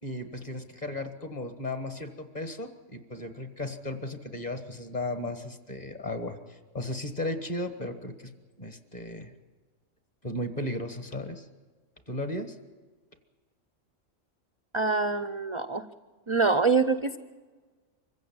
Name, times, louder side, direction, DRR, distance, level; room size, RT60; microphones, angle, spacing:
voice 1, 0.0-8.1 8.6-9.3 10.2-11.5 12.1-12.6, left 1 dB, 30° left, 8 dB, 1.7 m, -35 dB
voice 2, 14.7-15.8 16.3-17.2, right 4 dB, 30° right, 11 dB, 0.5 m, -25 dB
24.5 x 15.5 x 8.8 m, 1.4 s
omnidirectional pair, 1.3 m